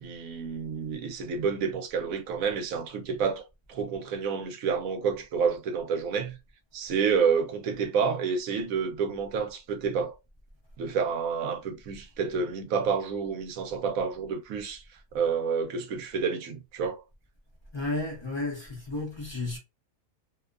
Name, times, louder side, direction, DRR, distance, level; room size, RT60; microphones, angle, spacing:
voice 1, 0.0-3.4 3.7-6.4 6.7-10.1 10.8-14.8 15.1-17.0, right 6 dB, 70° right, 1.0 m, -29 dB
voice 2, 17.7-19.6, left 2 dB, 40° left, 0.3 m, -32 dB
2.7 x 2.2 x 2.3 m
omnidirectional pair, 1.5 m